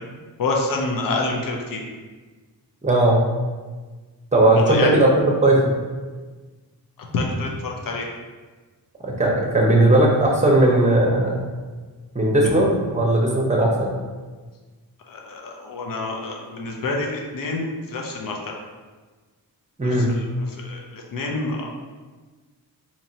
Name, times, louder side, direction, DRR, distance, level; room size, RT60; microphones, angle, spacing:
voice 1, 0.4-1.8 4.5-4.9 7.1-8.1 15.1-18.5 19.8-21.7, left 3 dB, 60° left, 0 dB, 0.7 m, -27 dB
voice 2, 2.8-3.2 4.3-5.1 5.4-5.7 9.0-11.4 12.1-13.9 19.8-20.1, right 1 dB, 20° right, -1 dB, 0.8 m, -17 dB
4.1 x 2.9 x 2.8 m, 1.4 s
wide cardioid pair, 95°, 38 cm